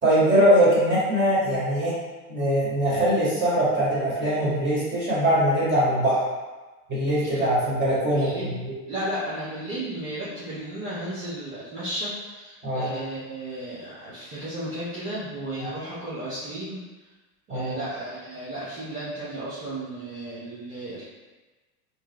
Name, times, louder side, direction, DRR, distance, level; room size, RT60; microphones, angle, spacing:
voice 1, 0.0-2.0 2.3-6.2 6.9-8.7 12.6-12.9 17.5-17.7, right 1 dB, 25° right, -7 dB, 1.5 m, -22 dB
voice 2, 8.1-8.5 8.9-16.8 17.5-21.0, right 1 dB, 80° right, -12 dB, 1.2 m, -34 dB
3.2 x 2.3 x 3.0 m, 1.2 s
hypercardioid pair, 90°, 46 cm